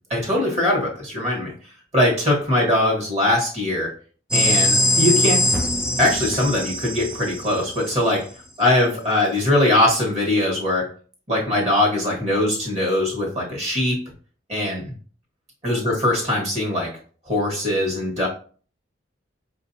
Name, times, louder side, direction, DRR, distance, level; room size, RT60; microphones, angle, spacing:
voice 1, 0.1-1.5 1.9-3.9 4.3-5.5 6.0-8.3 8.6-10.9 11.3-14.0 14.5-14.9 15.6-16.9 17.3-18.3, left 1 dB, 35° right, -3 dB, 1.2 m, -21 dB
sound 1, 4.3-8.0, left 1 dB, 5° right, 0.3 m, -21 dB
5.0 x 2.5 x 2.7 m, 0.42 s
head